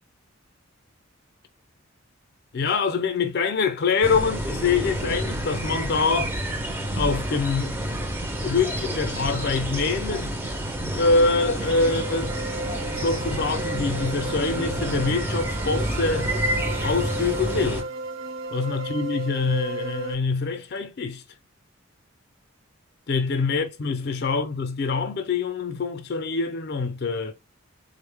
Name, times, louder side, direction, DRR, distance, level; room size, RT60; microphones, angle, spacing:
voice 1, 2.5-6.3 7.0-7.7 8.4-10.3 10.9-12.3 12.7-16.3 16.8-17.9 18.5-21.2 23.1-27.3, left 4 dB, 50° left, 0.4 m, -25 dB
sound 1, 4.0-17.8, right 1 dB, 10° right, 0.4 m, -29 dB
sound 2, 11.6-20.1, right 2 dB, 60° right, 0.7 m, -34 dB
3.5 x 2.0 x 3.4 m
head